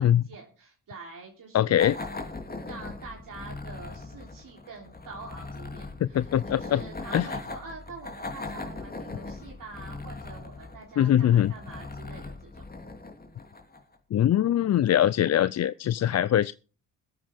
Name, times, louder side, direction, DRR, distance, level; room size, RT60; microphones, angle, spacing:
voice 1, 0.0-2.1 2.6-12.6, right 4 dB, 60° right, 3.5 m, -46 dB
voice 2, 1.5-2.0 6.1-6.8 7.1-7.3 11.0-11.5 14.1-16.5, left 11 dB, 45° left, 0.5 m, -22 dB
sound 1, 1.8-14.0, left 3 dB, 25° left, 2.8 m, -39 dB
21.5 x 8.7 x 3.6 m
supercardioid pair, 60°, 38 cm